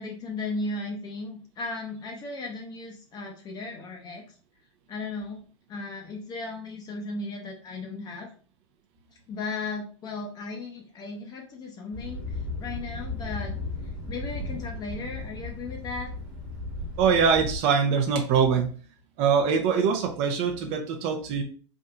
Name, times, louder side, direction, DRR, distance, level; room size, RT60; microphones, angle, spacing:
voice 1, 0.0-4.2 4.9-5.4 5.7-8.3 9.3-12.2 12.6-13.6 14.1-16.1, left 3 dB, 25° left, 2 dB, 0.6 m, -36 dB
Thunder, 11.9-17.6, left 2 dB, 25° right, 1.2 m, -35 dB
voice 2, 17.0-18.7 19.2-21.4, right 6 dB, 40° right, 4 dB, 0.6 m, -23 dB
3.5 x 2.6 x 2.4 m, 0.41 s
hypercardioid pair, 105°, 15 cm